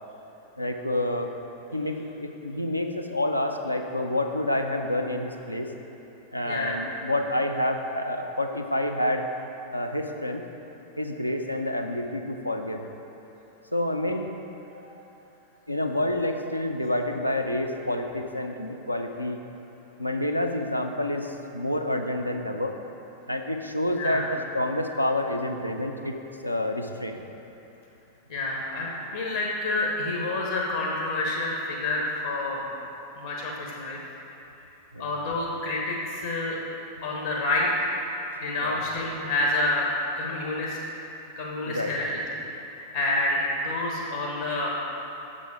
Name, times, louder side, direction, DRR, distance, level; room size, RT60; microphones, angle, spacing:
voice 1, 0.6-1.3 1.7-5.7 6.3-9.3 9.7-10.4 11.0-12.8 13.7-14.3 15.7-19.4 20.0-22.7 23.3-24.3 24.5-26.1 26.4-27.2 34.9-35.1 38.6-38.8 41.7-41.9, left 1 dB, 90° left, 4 dB, 0.5 m, -28 dB
voice 2, 6.4-6.8 24.0-24.3 28.3-32.7 33.2-34.0 35.0-36.6 37.0-38.0 38.4-39.9 40.2-40.8 41.4-42.2 42.6-44.7, left 2 dB, 70° left, -2 dB, 1.0 m, -28 dB
7.5 x 6.7 x 4.8 m, 3.0 s
figure-of-eight pair, 90°, 0 cm